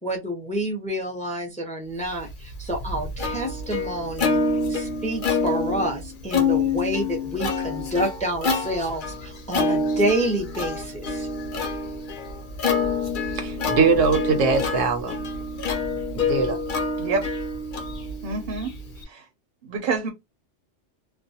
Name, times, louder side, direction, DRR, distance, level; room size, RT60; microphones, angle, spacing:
voice 1, 0.0-4.4 4.7-11.3, right 1 dB, 10° left, 0.4 m, -28 dB
Plucked string instrument, 2.3-19.0, left 3 dB, 50° left, 0.7 m, -27 dB
voice 2, 13.3-15.2 16.1-16.6, right 4 dB, 80° right, 1.0 m, -22 dB
voice 3, 18.2-18.7 19.1-19.3 19.6-20.1, right 4 dB, 55° right, 0.7 m, -27 dB
2.4 x 2.1 x 2.7 m
omnidirectional pair, 1.3 m